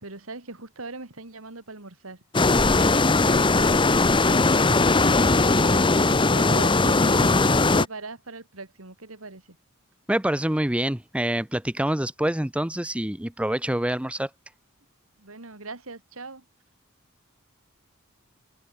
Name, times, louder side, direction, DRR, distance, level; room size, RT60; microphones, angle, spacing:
voice 1, 0.0-3.7 4.3-9.4 15.2-16.4, right 3 dB, 80° right, 3.0 m, -40 dB
sound 1, 2.3-7.9, left 3 dB, 25° left, 0.9 m, -19 dB
voice 2, 10.1-14.3, right 1 dB, 5° right, 0.8 m, -26 dB
head